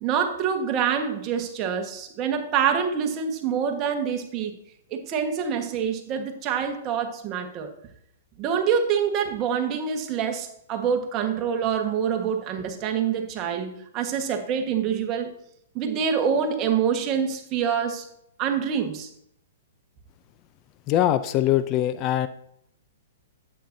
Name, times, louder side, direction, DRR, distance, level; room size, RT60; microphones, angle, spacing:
voice 1, 0.0-4.5 4.9-7.7 8.4-15.3 15.7-18.1 18.4-19.1, right 7 dB, 30° right, 5 dB, 1.3 m, -26 dB
voice 2, 20.9-22.3, left 12 dB, 35° left, 12 dB, 0.4 m, -22 dB
10.0 x 8.5 x 2.7 m, 0.73 s
hypercardioid pair, 135°, 0 cm